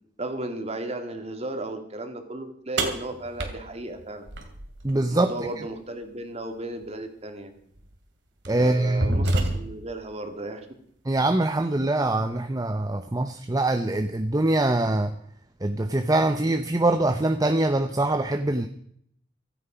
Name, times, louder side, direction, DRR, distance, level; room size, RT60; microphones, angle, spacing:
voice 1, 0.2-4.3 5.1-7.5 8.5-10.7, right 1 dB, 35° right, 6 dB, 2.3 m, -35 dB
sound 1, 2.8-4.9 6.8-6.9 7.8-8.0 8.4-9.9, right 1 dB, 80° right, 2.7 m, -28 dB
voice 2, 4.8-5.3 8.5-9.2 11.1-15.1 15.6-18.7, right 2 dB, 20° right, 7 dB, 0.7 m, -23 dB
16.0 x 13.5 x 5.1 m, 0.68 s
head